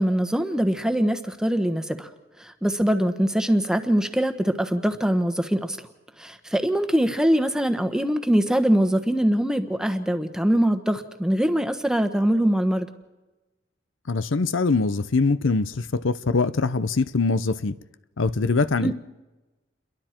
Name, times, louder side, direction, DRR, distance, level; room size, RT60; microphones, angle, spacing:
voice 1, 0.0-2.1 2.4-5.8 6.2-12.9 18.8-18.9, equal, 5° right, 1.2 m, -23 dB
voice 2, 14.1-17.7 18.2-18.9, left 3 dB, 85° left, 0.7 m, -23 dB
29.5 x 22.5 x 4.5 m
head